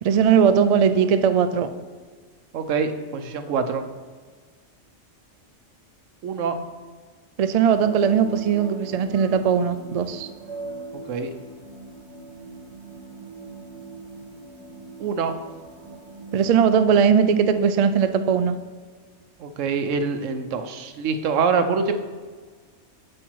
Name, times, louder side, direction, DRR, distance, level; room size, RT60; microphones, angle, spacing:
voice 1, 0.0-1.7 7.4-10.3 16.3-18.6, right 7 dB, 60° right, 10 dB, 0.4 m, -19 dB
voice 2, 2.5-3.8 6.2-6.6 11.1-11.3 15.0-15.3 19.4-21.9, right 5 dB, 90° right, 9 dB, 1.1 m, -25 dB
sound 1, 7.7-16.5, right 3 dB, 25° right, 1.3 m, -41 dB
7.7 x 7.4 x 4.6 m, 1.5 s
omnidirectional pair, 1.3 m